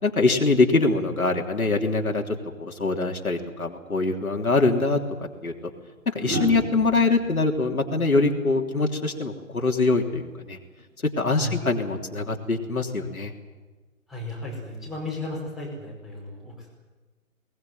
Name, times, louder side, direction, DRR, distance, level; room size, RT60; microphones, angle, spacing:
voice 1, 0.0-5.0 5.4-5.5 6.0-10.6 11.2-13.3, left 3 dB, 85° left, 2 dB, 3.3 m, -23 dB
sound 1, 4.7-4.8 6.2-9.2 10.8-11.1, right 2 dB, 85° right, 3.9 m, -34 dB
voice 2, 14.1-16.7, left 1 dB, ahead, -3 dB, 4.9 m, -35 dB
21.0 x 19.5 x 9.4 m, 1.3 s
figure-of-eight pair, 145°, 42 cm